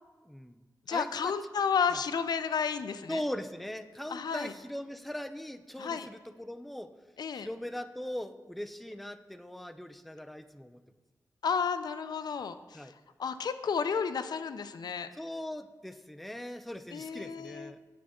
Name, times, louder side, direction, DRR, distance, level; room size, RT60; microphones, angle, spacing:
voice 1, 0.2-0.6 0.9-1.4 1.9-2.0 3.1-6.9 7.3-10.8 12.7-12.9 15.1-17.8, left 1 dB, ahead, 10 dB, 0.3 m, -40 dB
voice 2, 0.9-3.2 4.1-4.5 5.8-6.1 7.2-7.5 11.4-12.8 13.2-15.1 16.9-17.7, left 6 dB, 85° left, 11 dB, 0.4 m, -32 dB
8.5 x 7.4 x 3.6 m, 1.3 s
wide cardioid pair, 150°, 7 cm